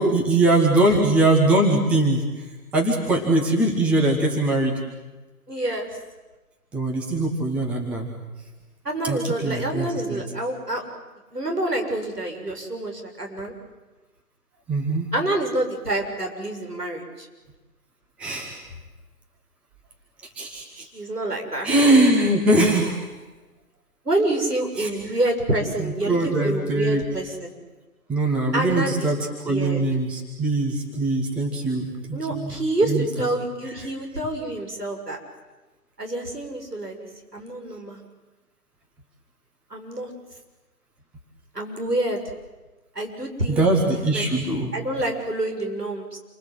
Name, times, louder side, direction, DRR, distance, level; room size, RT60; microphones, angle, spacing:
voice 1, 0.0-2.4 2.7-4.8 6.7-8.1 9.0-10.2 14.7-15.1 18.2-18.6 20.4-20.8 21.6-23.0 24.8-24.9 25.8-27.0 28.1-32.6 32.9-33.0 43.5-44.7, right 2 dB, 5° right, -1 dB, 1.3 m, -22 dB
voice 2, 5.5-5.9 8.8-10.9 11.3-13.5 15.1-17.3 20.8-21.7 24.1-27.5 28.5-29.1 29.5-29.8 32.1-35.2 36.0-38.0 39.7-40.1 41.5-42.2 43.0-43.7 44.1-46.2, right 1 dB, 90° right, 3 dB, 7.0 m, -27 dB
28.5 x 24.0 x 7.9 m, 1.2 s
figure-of-eight pair, 150°, 46 cm